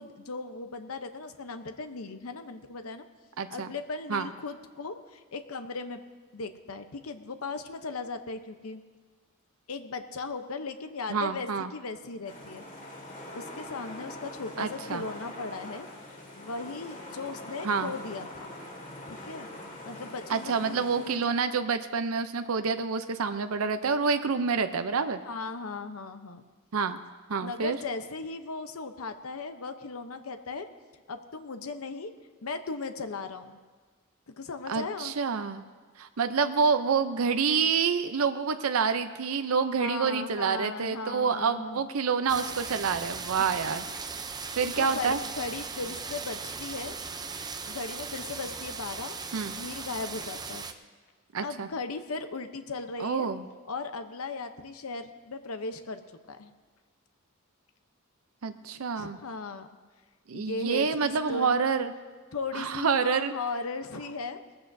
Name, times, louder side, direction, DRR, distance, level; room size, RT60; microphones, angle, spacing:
voice 1, 0.0-3.1 3.5-6.0 6.3-8.8 9.7-12.7 13.3-15.9 16.4-18.5 19.1-19.5 19.8-21.3 25.2-26.4 27.4-30.7 31.1-32.1 32.4-33.6 34.3-35.1 39.8-41.8 43.6-43.9 44.8-46.9 47.6-49.2 49.6-50.6 51.4-53.3 53.7-56.0 56.3-56.5 58.7-59.7 60.3-61.6 62.3-64.4, left 3 dB, 80° left, 8 dB, 0.8 m, -37 dB
voice 2, 3.4-3.7 4.1-4.3 11.1-11.7 14.6-15.0 17.6-17.9 20.3-25.2 26.7-27.0 27.3-27.8 34.7-35.6 36.0-43.9 44.6-45.2 49.3-49.5 51.3-51.7 53.0-53.4 58.4-59.2 60.3-61.9 62.5-63.3, right 5 dB, 75° right, 9 dB, 0.6 m, -27 dB
sound 1, 12.2-21.2, left 1 dB, 40° left, 2.4 m, -43 dB
sound 2, 42.3-50.7, right 5 dB, 20° right, 0.5 m, -38 dB
19.5 x 14.5 x 2.7 m, 1.4 s
head